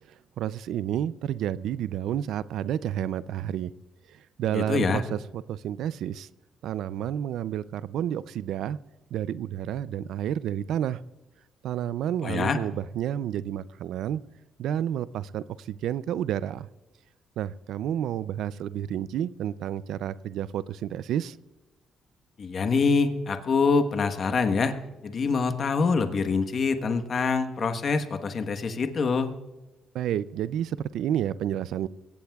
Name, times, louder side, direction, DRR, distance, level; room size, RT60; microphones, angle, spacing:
voice 1, 0.4-3.7 4.4-6.3 6.6-8.8 9.1-11.0 11.6-14.2 14.6-16.7 17.4-21.4 29.9-31.9, right 10 dB, 80° right, 17 dB, 0.4 m, -30 dB
voice 2, 4.5-5.0 12.2-12.6 22.4-24.8 25.0-29.3, left 4 dB, 50° left, 7 dB, 1.2 m, -25 dB
22.5 x 17.0 x 2.4 m, 1.1 s
cardioid pair, 90°, 0 cm